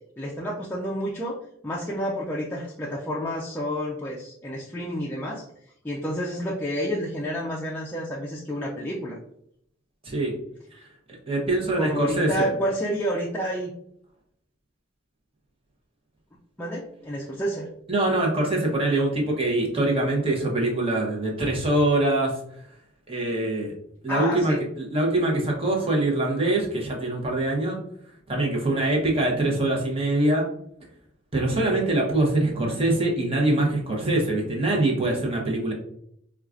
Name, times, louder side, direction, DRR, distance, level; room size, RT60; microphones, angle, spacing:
voice 1, 0.2-1.4 1.6-5.5 5.8-9.2 11.8-13.7 16.6-17.7 24.1-24.6, equal, 10° left, -4 dB, 0.4 m, -29 dB
voice 2, 10.0-10.4 10.7-10.8 11.1-12.5 17.9-22.4 23.1-23.7 24.0-27.8 28.3-30.5 31.3-35.7, right 2 dB, 30° right, -1 dB, 0.8 m, -24 dB
4.5 x 2.3 x 2.4 m, 0.71 s
head